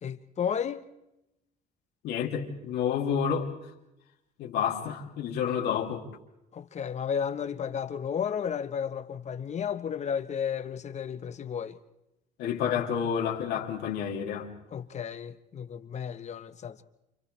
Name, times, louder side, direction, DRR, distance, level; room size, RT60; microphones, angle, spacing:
voice 1, 0.0-0.9 6.5-11.8 14.7-16.8, left 7 dB, 40° left, 1.3 m, -33 dB
voice 2, 2.0-3.5 4.4-6.1 12.4-14.5, left 8 dB, 80° left, 3.0 m, -29 dB
29.5 x 29.5 x 3.4 m
cardioid pair, 110°, 17 cm